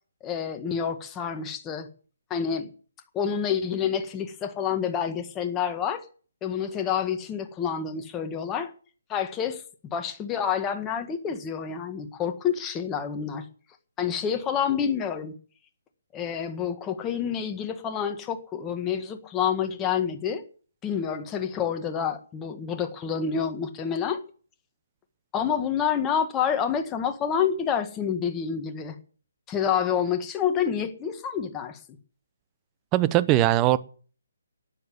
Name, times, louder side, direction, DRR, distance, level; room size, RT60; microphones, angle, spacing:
voice 1, 0.2-1.9 2.3-2.7 3.1-6.0 6.4-8.7 9.1-13.4 14.0-15.3 16.1-20.4 20.8-24.2 25.3-29.0 29.5-31.8, left 8 dB, 15° left, 1.7 m, -28 dB
voice 2, 32.9-33.8, right 15 dB, 20° right, 0.8 m, -20 dB
12.5 x 9.8 x 7.6 m
figure-of-eight pair, 140°, 0 cm